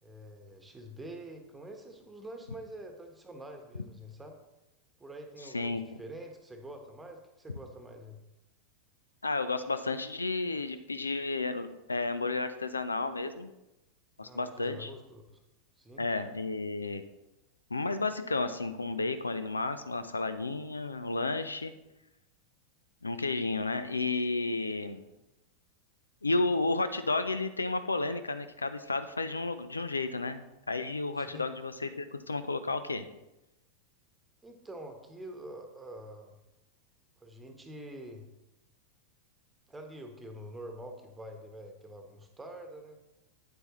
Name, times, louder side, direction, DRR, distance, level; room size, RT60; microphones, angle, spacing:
voice 1, 0.0-4.4 5.0-8.2 14.2-15.4 15.8-16.0 31.2-31.5 34.4-36.4 37.2-38.2 39.7-43.0, right 1 dB, 10° right, 4 dB, 1.2 m, -46 dB
voice 2, 9.2-13.5 14.2-14.9 16.0-17.0 17.7-21.7 23.0-25.0 26.2-33.1, left 3 dB, 80° left, 11 dB, 0.4 m, -32 dB
8.6 x 8.0 x 3.1 m, 0.98 s
figure-of-eight pair, 90°, 0 cm